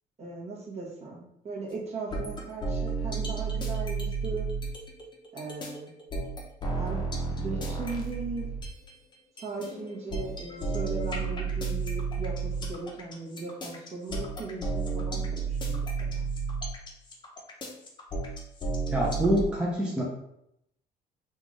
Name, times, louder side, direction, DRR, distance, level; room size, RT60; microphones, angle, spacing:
voice 1, 0.2-4.5 5.3-5.9 6.7-7.0 7.3-8.5 9.4-16.3, right 3 dB, 40° right, -4 dB, 1.2 m, -38 dB
sound 1, 2.1-8.9 9.4-19.4, right 4 dB, 25° left, 0.8 m, -32 dB
voice 2, 18.9-20.0, equal, 5° right, -4 dB, 0.7 m, -26 dB
3.5 x 2.5 x 3.3 m, 0.77 s
cardioid pair, 110°, 17 cm